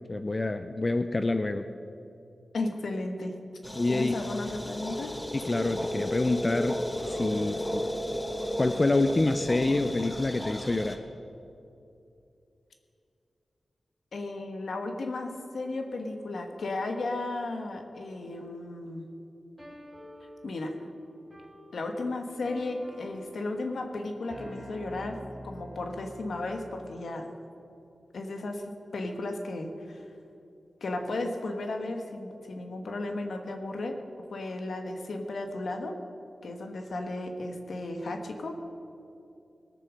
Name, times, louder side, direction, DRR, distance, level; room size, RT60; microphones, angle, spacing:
voice 1, 0.1-1.6 3.8-4.1 5.3-6.7 7.1-7.8 8.6-11.0, left 2 dB, 30° left, 9 dB, 0.5 m, -27 dB
voice 2, 2.5-3.3 3.9-5.1 7.3-7.5 14.1-19.1 20.4-20.8 21.7-27.3 28.1-30.1 30.8-34.0 34.3-35.9 36.4-38.5, left 2 dB, 75° left, 4 dB, 1.3 m, -34 dB
sound 1, 3.6-11.0, equal, 15° left, 1.2 m, -34 dB
sound 2, 19.6-26.5, equal, 10° right, 3.4 m, -48 dB
19.0 x 6.8 x 6.2 m, 2.7 s
wide cardioid pair, 85°, 0 cm